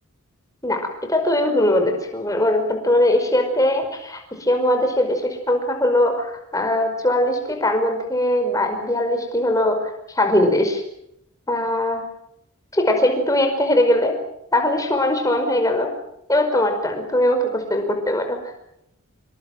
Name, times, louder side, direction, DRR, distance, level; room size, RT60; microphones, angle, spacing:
voice 1, 0.6-10.8 11.5-12.0 12.7-14.2 14.5-15.9 16.3-18.4, left 1 dB, 15° left, 4 dB, 5.2 m, -20 dB
26.5 x 24.0 x 7.8 m, 0.79 s
head